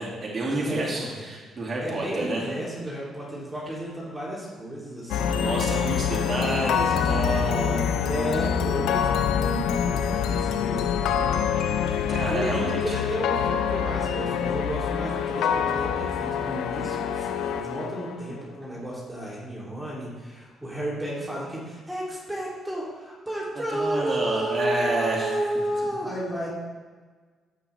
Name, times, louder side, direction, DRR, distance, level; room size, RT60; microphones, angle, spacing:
voice 1, 0.0-2.5 5.3-7.9 12.1-13.0 23.8-25.4, right 2 dB, 35° right, -4 dB, 2.2 m, -29 dB
voice 2, 0.5-1.1 1.5-5.6 8.0-11.2 12.3-26.5, right 1 dB, 10° right, -6 dB, 2.9 m, -32 dB
sound 1, 5.1-18.4, left 8 dB, 85° left, 0.5 m, -26 dB
14.0 x 6.0 x 3.3 m, 1.4 s
cardioid pair, 90°, 0 cm